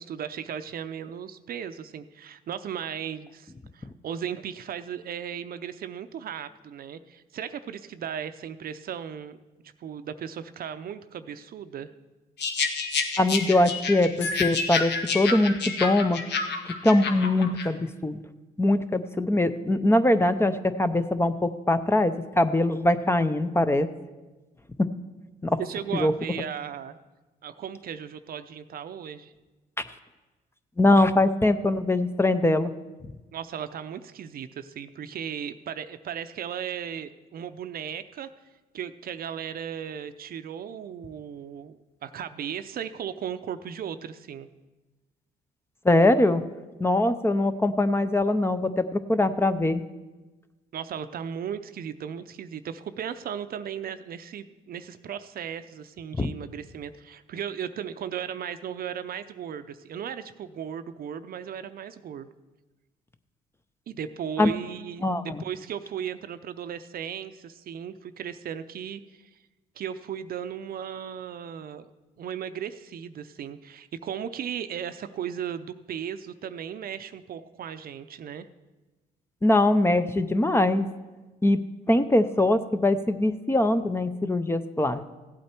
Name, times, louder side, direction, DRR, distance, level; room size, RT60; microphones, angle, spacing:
voice 1, 0.0-9.4 9.8-11.9 25.6-26.9 27.4-29.3 33.3-38.3 38.7-44.5 50.7-62.3 63.9-69.3 69.8-71.9 72.2-78.5, right 8 dB, 55° right, 11 dB, 0.6 m, -36 dB
sound 1, 12.4-17.7, left 4 dB, 75° left, 1.2 m, -29 dB
voice 2, 13.2-16.2 16.7-18.2 18.6-23.9 24.8-24.9 25.4-25.6 25.9-26.1 30.8-32.7 45.8-46.4 46.8-49.8 56.2-56.3 64.4-64.5 65.0-65.4 79.4-80.8 81.4-81.6 81.9-85.0, left 1 dB, 15° left, 11 dB, 0.6 m, -22 dB
15.5 x 8.6 x 4.4 m, 1.2 s
cardioid pair, 90°, 18 cm